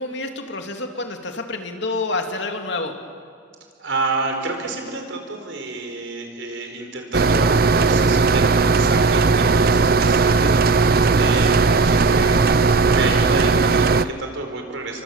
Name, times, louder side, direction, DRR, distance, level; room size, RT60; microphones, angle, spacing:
voice 1, 0.0-2.9, left 3 dB, 65° left, 4 dB, 2.7 m, -28 dB
voice 2, 3.8-10.6 10.9-15.0, right 2 dB, 75° right, 4 dB, 4.7 m, -29 dB
sound 1, 7.1-14.1, right 4 dB, 50° right, 0.6 m, -17 dB
29.5 x 24.0 x 7.4 m, 2.2 s
head